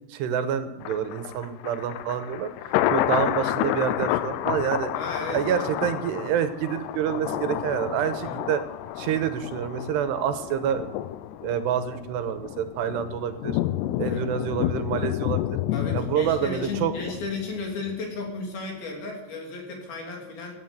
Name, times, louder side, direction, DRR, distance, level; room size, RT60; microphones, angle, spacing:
voice 1, 0.1-2.5 2.9-4.9 5.3-8.6 9.0-10.8 11.4-13.6 14.0-15.6 15.9-16.9, right 8 dB, 80° right, 10 dB, 3.1 m, -27 dB
Thunder, 0.8-17.9 18.3-18.4, left 13 dB, 80° left, 2.7 m, -30 dB
voice 2, 4.9-6.0 8.2-8.4 14.0-14.2 15.7-20.5, left 3 dB, 60° left, 0 dB, 4.9 m, -34 dB
15.5 x 9.6 x 8.1 m, 1.1 s
omnidirectional pair, 4.9 m